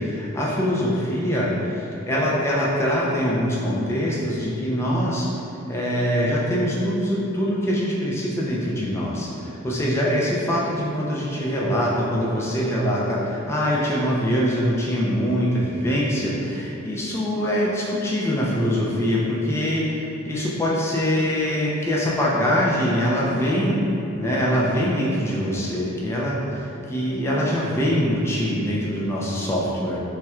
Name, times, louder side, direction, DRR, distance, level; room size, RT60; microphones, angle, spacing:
voice 1, 0.0-5.3 5.7-23.8 24.2-30.0, equal, 10° left, -5 dB, 0.3 m, -23 dB
4.2 x 2.1 x 2.3 m, 3.0 s
head